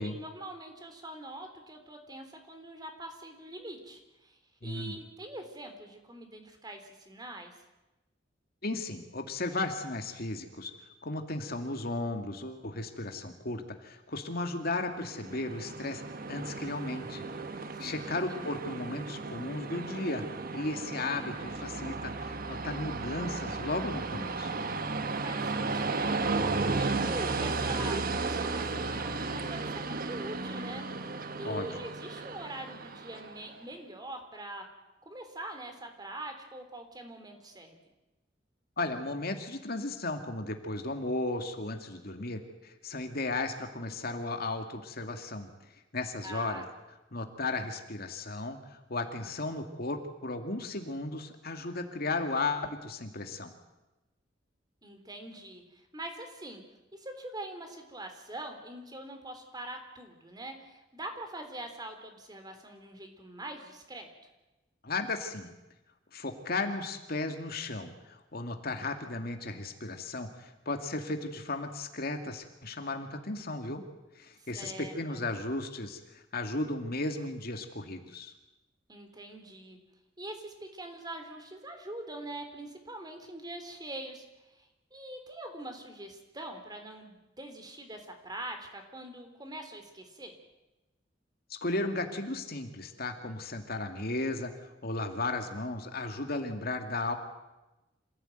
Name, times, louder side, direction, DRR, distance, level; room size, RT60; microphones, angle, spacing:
voice 1, 0.0-7.6 17.8-18.4 25.2-26.3 26.7-34.7 35.0-37.8 46.2-46.6 54.8-56.6 56.9-64.1 74.4-75.2 78.9-79.8 80.2-90.3, right 1 dB, 20° right, 5 dB, 3.6 m, -43 dB
voice 2, 4.6-4.9 8.6-10.7 11.0-16.0 16.3-17.3 17.5-20.2 20.5-24.6 31.4-31.7 38.8-45.5 45.9-46.6 47.1-53.5 64.8-65.5 66.1-73.8 74.2-78.3 91.5-94.5 94.8-97.1, left 2 dB, 55° left, 5 dB, 2.4 m, -35 dB
Train, 14.9-33.5, right 3 dB, 50° right, 1.3 m, -34 dB
sound 1, 21.3-25.1 25.5-30.1, equal, 30° left, 1.3 m, -45 dB
27.0 x 16.5 x 9.2 m, 1.0 s
head